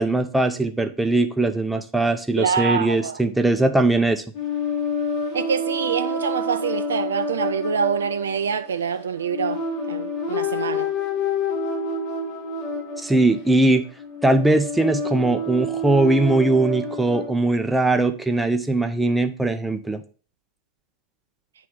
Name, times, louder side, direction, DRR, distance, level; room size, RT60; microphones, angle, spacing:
voice 1, 0.0-4.2 13.0-13.8 14.2-20.0, right 2 dB, 5° right, 0.7 m, -20 dB
voice 2, 2.4-3.2 5.3-10.9, right 6 dB, 65° right, 0.4 m, -25 dB
sound 1, 4.3-17.3, left 2 dB, 35° left, 1.6 m, -28 dB
9.1 x 3.4 x 4.9 m
figure-of-eight pair, 90°, 0 cm